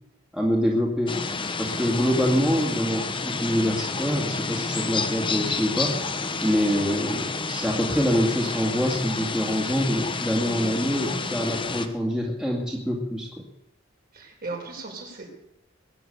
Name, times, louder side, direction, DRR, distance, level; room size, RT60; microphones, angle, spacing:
voice 1, 0.3-1.1 1.6-6.0 6.4-13.5, equal, 5° right, -2 dB, 2.4 m, -25 dB
sound 1, 1.1-11.9, left 4 dB, 25° left, 1.0 m, -30 dB
voice 2, 14.1-15.3, right 2 dB, 50° right, -1 dB, 5.7 m, -37 dB
22.0 x 9.5 x 6.9 m, 0.85 s
head